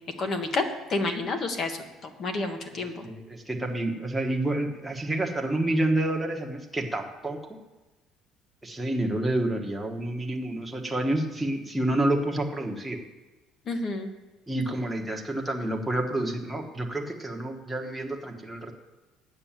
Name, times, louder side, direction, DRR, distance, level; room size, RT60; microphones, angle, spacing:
voice 1, 0.2-0.6 0.9-3.1 13.7-14.1, left 3 dB, 35° left, 6 dB, 1.4 m, -29 dB
voice 2, 3.0-7.4 8.6-13.0 14.5-18.7, right 1 dB, 5° right, 1 dB, 1.3 m, -29 dB
9.0 x 8.0 x 7.4 m, 1.2 s
cardioid pair, 140°, 0 cm